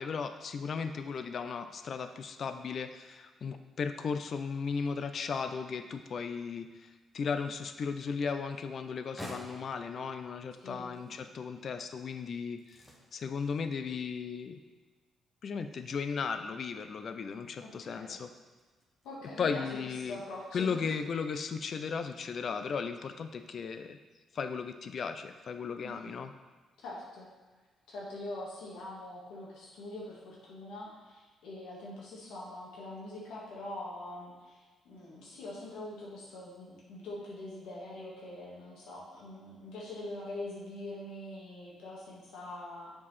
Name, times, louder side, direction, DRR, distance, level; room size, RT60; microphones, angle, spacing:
voice 1, 0.0-12.8 13.1-14.6 15.4-18.3 19.4-20.2 20.5-24.0 24.3-26.3, left 5 dB, 55° left, 9 dB, 0.5 m, -36 dB
sound 1, 8.7-20.6, equal, 5° left, 1.6 m, -55 dB
voice 2, 10.6-10.9 17.6-18.2 19.0-19.7 20.0-20.9 25.8-26.2 26.8-27.3 27.9-42.9, left 1 dB, 85° left, -6 dB, 1.7 m, -44 dB
7.3 x 4.6 x 4.2 m, 1.3 s
cardioid pair, 90°, 0 cm